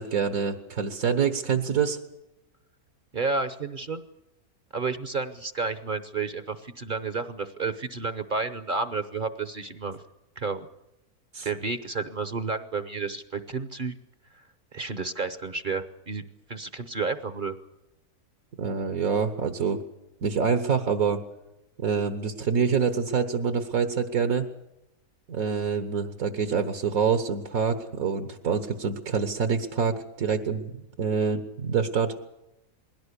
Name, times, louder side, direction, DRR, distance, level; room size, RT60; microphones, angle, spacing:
voice 1, 0.0-2.0 11.3-11.5 18.6-19.8 20.2-21.2 21.8-24.5 25.3-32.1, right 6 dB, 75° right, 8 dB, 1.7 m, -26 dB
voice 2, 3.1-4.0 4.7-10.0 10.4-10.7 11.4-14.0 14.7-16.2 16.5-17.6, right 4 dB, 40° right, 11 dB, 0.9 m, -31 dB
21.0 x 17.0 x 8.3 m, 0.92 s
omnidirectional pair, 1.6 m